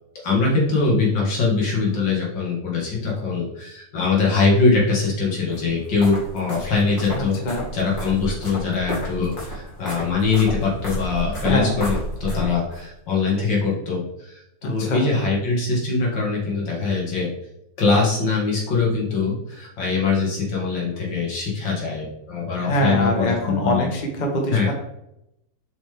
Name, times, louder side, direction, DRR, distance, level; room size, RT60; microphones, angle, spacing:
voice 1, 0.2-7.4 7.7-17.3 17.8-23.9 24.5-24.7, left 4 dB, 80° left, -3 dB, 2.6 m, -22 dB
sound 1, 5.5-12.8, equal, 55° left, 2.8 m, -31 dB
voice 2, 14.6-15.0 22.6-24.7, left 1 dB, 30° left, 2 dB, 1.1 m, -24 dB
7.3 x 5.2 x 3.4 m, 0.83 s
omnidirectional pair, 2.0 m